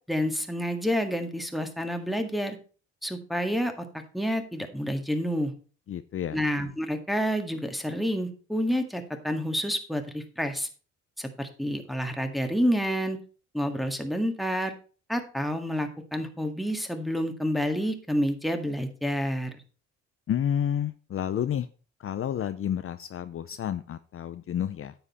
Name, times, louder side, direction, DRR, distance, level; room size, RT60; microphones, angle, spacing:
voice 1, 0.1-2.6 3.0-3.8 4.1-5.5 6.3-10.7 11.2-13.2 13.5-14.7 15.1-19.5, equal, ahead, 5 dB, 1.8 m, -29 dB
voice 2, 5.9-6.4 20.3-21.7 22.0-24.9, left 9 dB, 45° left, 11 dB, 0.6 m, -30 dB
9.7 x 7.8 x 4.2 m, 0.38 s
cardioid pair, 90°, 30 cm